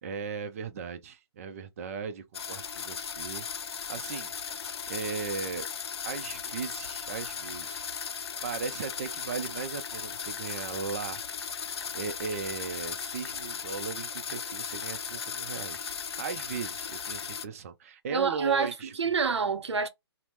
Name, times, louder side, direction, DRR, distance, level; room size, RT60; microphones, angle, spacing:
voice 1, 0.0-4.3 4.9-5.7 6.1-7.9 8.4-11.2 11.9-15.9 16.2-18.9, right 5 dB, 30° right, 0.5 m, -37 dB
sound 1, 2.3-17.5, left 7 dB, 65° left, 0.4 m, -37 dB
voice 2, 18.1-19.9, right 5 dB, 80° right, 0.7 m, -27 dB
2.8 x 2.1 x 3.3 m
hypercardioid pair, 150°, 14 cm